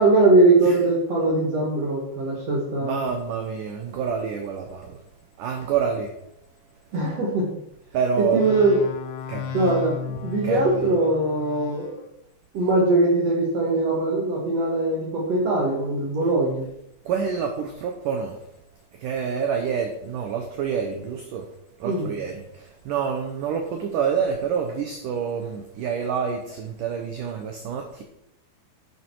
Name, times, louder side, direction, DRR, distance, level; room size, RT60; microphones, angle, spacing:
voice 1, 0.0-3.0 6.9-7.5 8.2-8.8 9.5-10.0 10.2-12.0 12.5-16.6 21.8-22.1, right 2 dB, 50° right, -2 dB, 2.1 m, -21 dB
voice 2, 2.8-5.0 5.4-6.1 7.9-8.4 9.3-9.5 10.4-10.6 17.1-18.4 19.0-21.5 21.8-28.0, right 6 dB, 90° right, 4 dB, 1.8 m, -27 dB
sound 1, 8.4-12.0, left 7 dB, 80° left, 2.8 m, -34 dB
9.3 x 9.1 x 4.5 m, 0.78 s
omnidirectional pair, 5.2 m